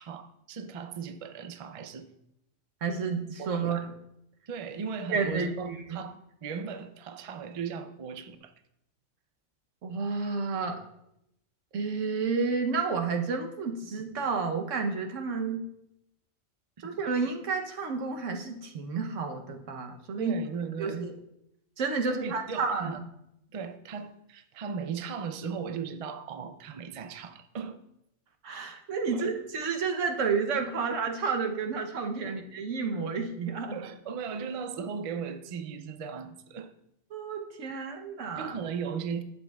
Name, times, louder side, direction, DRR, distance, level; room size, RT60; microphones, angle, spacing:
voice 1, 0.0-2.1 3.4-3.9 4.5-8.5 16.8-16.9 20.2-21.1 22.1-23.0 23.5-27.8 29.1-29.3 30.8-30.9 32.2-32.4 33.7-36.7 38.4-39.2, right 6 dB, 55° right, 8 dB, 0.3 m, -37 dB
voice 2, 2.8-3.8 5.1-6.0 9.8-10.8 11.7-15.6 16.8-20.3 20.8-21.1 21.8-23.0 28.4-33.8 37.1-38.5, right 5 dB, 80° right, 4 dB, 1.2 m, -31 dB
11.0 x 6.9 x 2.3 m, 0.82 s
omnidirectional pair, 1.3 m